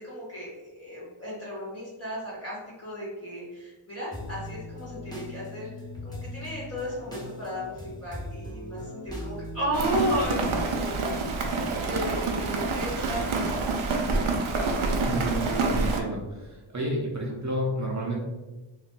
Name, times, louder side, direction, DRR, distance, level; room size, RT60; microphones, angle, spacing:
voice 1, 0.0-5.7 6.0-11.4 11.8-13.9, equal, 30° left, -8 dB, 1.4 m, -34 dB
sound 1, 4.1-10.6, left 1 dB, 10° left, 1.1 m, -39 dB
Rain, 9.7-16.0, right 3 dB, 75° right, 0.7 m, -27 dB
voice 2, 15.1-18.2, right 1 dB, 35° right, -3 dB, 0.6 m, -30 dB
2.6 x 2.5 x 3.8 m, 1.1 s
wide cardioid pair, 75°, 50 cm